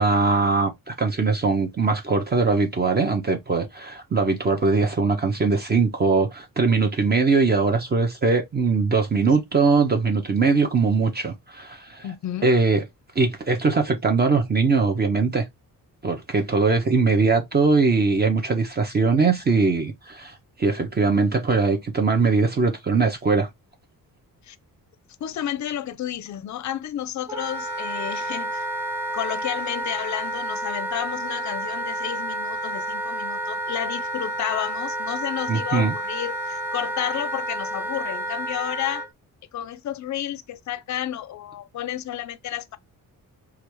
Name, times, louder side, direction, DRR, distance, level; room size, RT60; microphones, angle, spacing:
voice 1, 0.0-12.1 12.4-12.8 13.2-15.5 16.0-23.5 35.5-35.9, right 4 dB, 25° right, 0.6 m, -21 dB
voice 2, 12.0-12.5 24.4-24.6 25.2-28.7 29.1-39.0 39.5-42.8, left 12 dB, 55° left, 0.5 m, -31 dB
Wind instrument woodwind instrument, 27.3-39.1, right 1 dB, 5° right, 1.1 m, -30 dB
3.2 x 2.4 x 2.9 m
cardioid pair, 110°, 36 cm